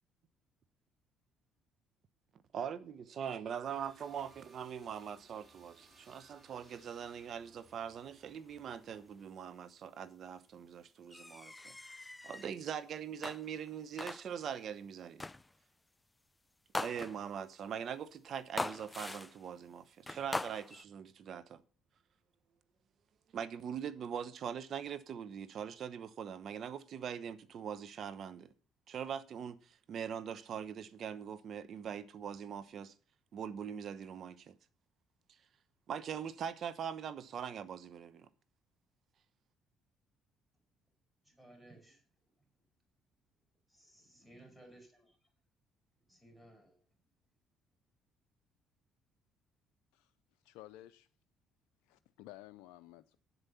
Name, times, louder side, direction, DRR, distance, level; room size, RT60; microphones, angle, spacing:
voice 1, 2.5-11.7 12.2-15.2 16.8-21.6 23.3-28.5 28.9-32.9 33.3-34.6 35.9-38.3, right 8 dB, 60° right, 1.0 m, -42 dB
sound 1, 3.6-9.3, right 3 dB, 40° right, 4.2 m, -64 dB
sound 2, 11.1-12.5 13.2-13.7 14.0-14.5 15.2-15.6 16.7-17.4 18.6-19.5 20.1-20.8, left 2 dB, 15° left, 0.5 m, -41 dB
voice 2, 41.2-42.0 42.3-42.5 43.7-45.3 46.1-46.8, right 1 dB, ahead, 5.3 m, -59 dB
voice 3, 50.4-51.1 51.9-53.2, left 15 dB, 85° left, 0.5 m, -54 dB
9.8 x 8.0 x 5.6 m
supercardioid pair, 70°, 0 cm